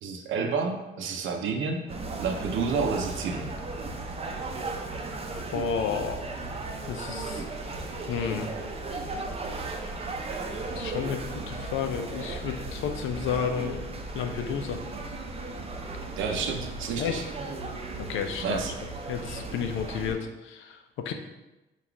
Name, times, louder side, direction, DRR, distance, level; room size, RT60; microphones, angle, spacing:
voice 1, 0.0-1.8 2.2-3.5 16.2-17.3 18.4-18.7, right 5 dB, 80° right, 3 dB, 0.6 m, -29 dB
sound 1, 1.9-20.1, right 3 dB, 30° right, 0.6 m, -36 dB
voice 2, 5.5-6.2 6.9-7.4 8.1-8.5 10.7-13.9 14.1-14.8 17.0-17.2 18.1-18.6 19.1-20.8 21.0-21.1, left 7 dB, 80° left, 6 dB, 0.5 m, -31 dB
4.0 x 2.4 x 4.4 m, 1.0 s
cardioid pair, 90°, 20 cm